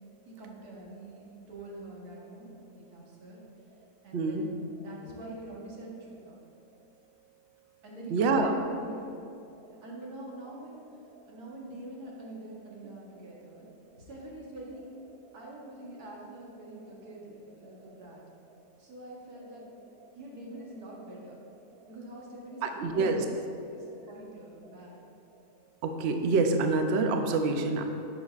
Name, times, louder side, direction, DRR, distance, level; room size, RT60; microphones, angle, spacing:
voice 1, 0.3-3.4 4.0-4.5 4.8-6.4 7.8-9.1 9.8-10.8 11.3-13.6 14.0-14.9 15.3-18.2 18.8-19.7 20.1-21.4 21.9-25.0, right 1 dB, 70° right, -3 dB, 1.7 m, -45 dB
voice 2, 4.1-4.4 8.1-8.6 22.6-23.2 25.8-27.8, right 3 dB, 90° right, 5 dB, 0.5 m, -26 dB
9.8 x 5.7 x 2.4 m, 2.7 s
omnidirectional pair, 1.7 m